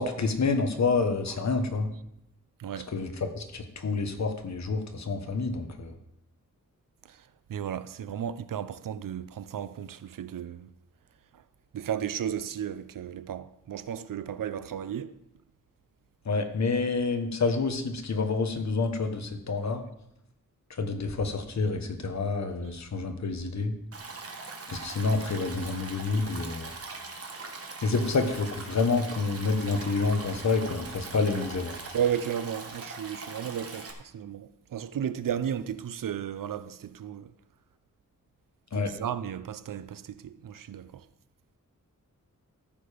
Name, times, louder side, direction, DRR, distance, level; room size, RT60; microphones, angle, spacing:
voice 1, 0.0-1.9 2.9-5.9 16.2-19.8 20.8-23.7 24.7-26.7 27.8-31.8 38.7-38.9, left 4 dB, 55° left, 1.3 m, -28 dB
voice 2, 2.6-2.9 7.5-10.7 11.7-15.1 31.9-37.3 38.7-41.0, right 9 dB, 80° right, 0.6 m, -34 dB
Stream, 23.9-33.9, right 3 dB, 45° right, 1.4 m, -41 dB
14.0 x 6.7 x 5.1 m
wide cardioid pair, 170°, 32 cm